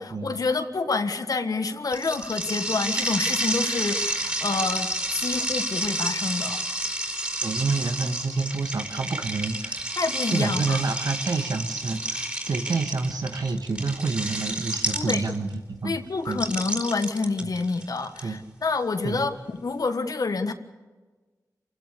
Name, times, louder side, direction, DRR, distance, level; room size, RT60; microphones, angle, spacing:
voice 1, 0.0-6.6 10.0-10.8 14.9-15.2 15.8-20.5, left 3 dB, 65° left, 7 dB, 1.6 m, -28 dB
sound 1, 1.9-15.5 16.3-18.2, right 1 dB, 20° right, 4.2 m, -30 dB
voice 2, 7.4-10.0 10.3-16.0 16.3-16.4 17.4-17.5 18.2-18.4 19.0-19.3, right 4 dB, 80° right, 5 dB, 1.8 m, -28 dB
28.0 x 16.5 x 6.9 m, 1.3 s
wide cardioid pair, 75°, 7 cm